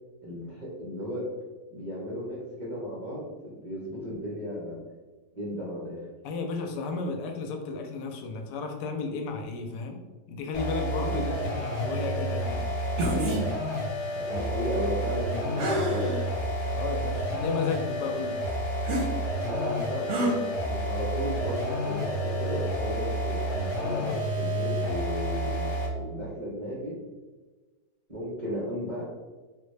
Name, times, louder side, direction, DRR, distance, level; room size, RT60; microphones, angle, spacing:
voice 1, 0.2-1.3 1.7-4.8 5.3-6.0 11.0-11.3 14.2-16.1 19.3-27.0 28.1-29.0, equal, 80° right, -6 dB, 0.4 m, -35 dB
voice 2, 6.2-10.0 10.3-12.7 14.8-14.9 16.7-18.4, left 4 dB, 75° left, 4 dB, 1.2 m, -33 dB
sound 1, 10.5-26.0, equal, 50° left, 1.1 m, -30 dB
sound 2, 13.0-13.4 15.6-16.2 16.9-17.0 18.8-19.1 20.1-20.3, equal, 60° right, 0.7 m, -27 dB
3.8 x 2.2 x 3.1 m, 1.3 s
omnidirectional pair, 1.9 m